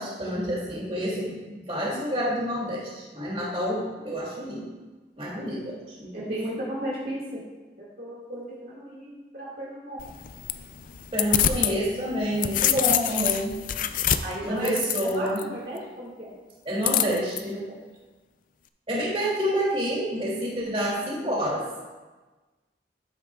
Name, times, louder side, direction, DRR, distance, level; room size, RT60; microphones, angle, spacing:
voice 1, 0.0-4.7 5.2-6.3 11.1-13.6 14.4-15.4 16.7-17.6 18.9-21.6, equal, 30° right, -4 dB, 2.6 m, -28 dB
voice 2, 6.1-7.4 7.8-10.0 14.2-14.7 15.0-16.4 17.5-17.8, right 1 dB, 55° right, -6 dB, 2.1 m, -35 dB
sound 1, 10.0-11.8 12.1-15.4 16.8-17.4, left 10 dB, 45° left, 0.4 m, -26 dB
12.5 x 9.3 x 2.4 m, 1.3 s
head